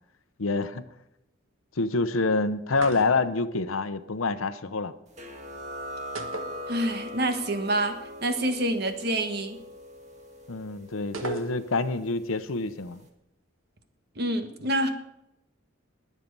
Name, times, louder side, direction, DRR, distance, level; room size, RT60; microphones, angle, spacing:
voice 1, 0.4-0.8 1.8-4.9 10.5-13.0, left 3 dB, 80° left, 12 dB, 0.8 m, -27 dB
sound 1, 2.7-3.5 6.2-7.2 7.5-7.6 11.1-11.9, right 4 dB, 80° right, 1.4 m, -37 dB
sound 2, 5.2-12.4, left 1 dB, 35° right, 1.8 m, -41 dB
voice 2, 6.7-7.9 8.2-9.6 14.2-14.9, right 1 dB, 50° right, 7 dB, 1.4 m, -27 dB
20.5 x 7.4 x 5.4 m, 0.87 s
head